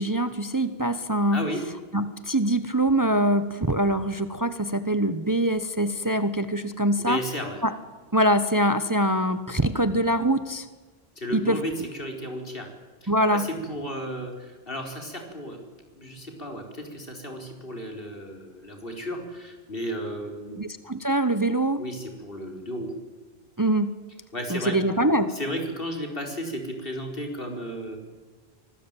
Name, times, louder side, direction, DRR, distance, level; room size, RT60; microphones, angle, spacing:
voice 1, 0.0-1.4 1.9-7.2 7.6-7.7 8.1-10.7 11.3-11.6 13.1-13.5 20.6-21.8 23.6-24.0 24.5-25.4, right 1 dB, 20° right, 12 dB, 1.0 m, -24 dB
voice 2, 1.3-1.6 7.0-7.6 11.2-12.7 13.0-15.6 15.9-20.6 21.8-22.9 24.3-24.8 25.3-28.0, equal, 60° left, 3 dB, 4.8 m, -34 dB
25.0 x 19.5 x 9.1 m, 1.3 s
omnidirectional pair, 1.0 m